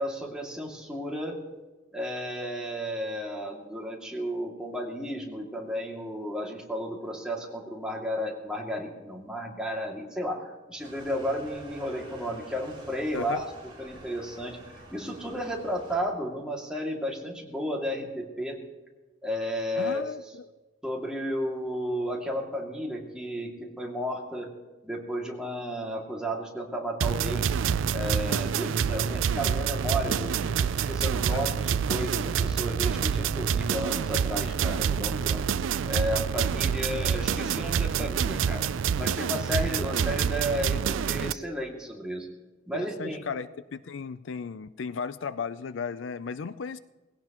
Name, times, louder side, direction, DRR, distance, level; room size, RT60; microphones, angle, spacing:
voice 1, 0.0-1.4 1.9-13.5 13.8-14.6 14.9-18.6 19.2-20.1 20.8-24.5 24.8-27.5 27.9-35.4 35.9-38.7 39.0-42.3 42.7-43.2, equal, 5° right, -2 dB, 2.4 m, -33 dB
sound 1, 10.8-16.0, right 2 dB, 25° right, 4.7 m, -48 dB
voice 2, 19.8-20.4 31.3-31.4 42.7-46.8, left 5 dB, 65° left, 14 dB, 0.4 m, -35 dB
sound 2, 27.0-41.3, right 7 dB, 75° right, 0.4 m, -27 dB
20.0 x 17.0 x 3.0 m, 1.2 s
head